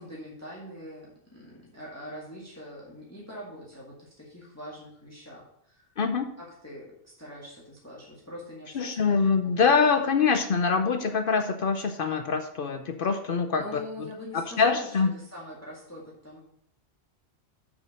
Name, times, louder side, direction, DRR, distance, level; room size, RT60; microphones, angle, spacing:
voice 1, 0.0-5.8 6.4-9.9 13.5-14.9 15.1-16.4, left 1 dB, 15° left, -5 dB, 1.9 m, -43 dB
voice 2, 6.0-6.3 8.7-13.6 14.3-15.1, left 5 dB, 60° left, 7 dB, 0.8 m, -24 dB
6.5 x 5.9 x 6.5 m, 0.70 s
omnidirectional pair, 1.1 m